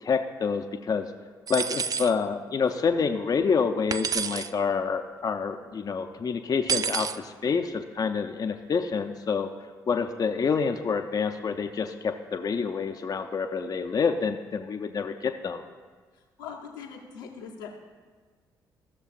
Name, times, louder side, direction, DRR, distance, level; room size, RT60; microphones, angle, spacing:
voice 1, 0.0-1.1 1.5-9.5 9.9-15.6, left 5 dB, 40° left, 6 dB, 0.5 m, -27 dB
sound 1, 1.5-2.1 3.9-4.5 6.7-7.2, right 7 dB, 35° right, 0.3 m, -29 dB
voice 2, 16.1-17.7, left 6 dB, 85° left, -1 dB, 0.9 m, -41 dB
15.0 x 6.5 x 2.5 m, 1.5 s
hypercardioid pair, 45°, 10 cm